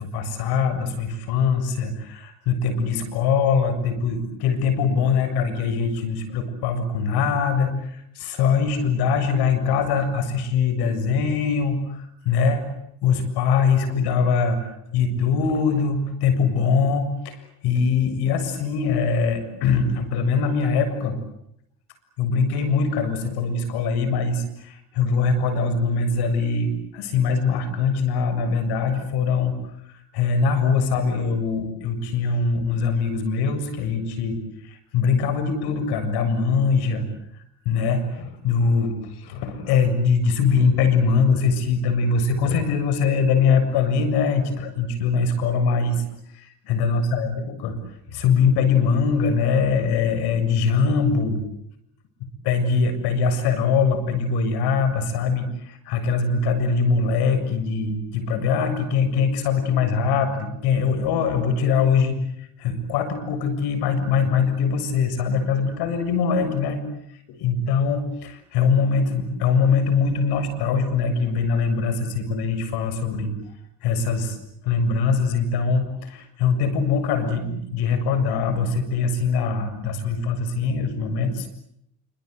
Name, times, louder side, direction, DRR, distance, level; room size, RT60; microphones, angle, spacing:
voice 1, 0.0-12.6 13.0-21.2 22.2-29.6 29.8-37.1 37.7-46.0 46.3-47.8 48.1-51.4 52.4-66.8 67.3-73.3 73.8-74.4 74.6-81.5, left 5 dB, 65° left, 10 dB, 7.3 m, -22 dB
27.5 x 26.0 x 8.3 m, 0.76 s
supercardioid pair, 100°, 41 cm